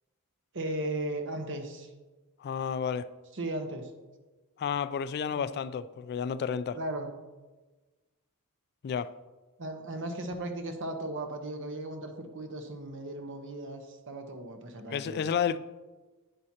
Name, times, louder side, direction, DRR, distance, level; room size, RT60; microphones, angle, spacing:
voice 1, 0.5-1.9 3.3-3.9 5.3-5.5 6.7-7.1 9.6-15.2, right 1 dB, 60° right, 1.1 m, -36 dB
voice 2, 2.4-3.1 4.6-6.8 8.8-9.1 14.9-15.6, left 7 dB, 50° left, 0.3 m, -31 dB
10.5 x 8.7 x 2.8 m
head